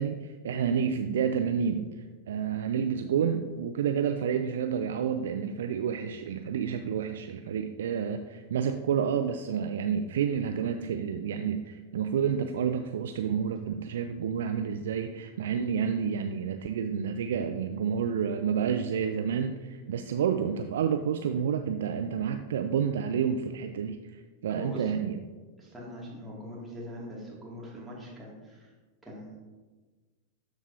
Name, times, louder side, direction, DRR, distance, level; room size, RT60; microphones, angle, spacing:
voice 1, 0.0-1.9 2.3-24.0 24.4-25.2, right 7 dB, 60° right, 7 dB, 0.3 m, -29 dB
voice 2, 24.5-24.9 25.6-28.7 29.0-29.4, equal, 10° right, -5 dB, 2.5 m, -42 dB
12.5 x 4.7 x 2.8 m, 1.3 s
figure-of-eight pair, 90°, 0 cm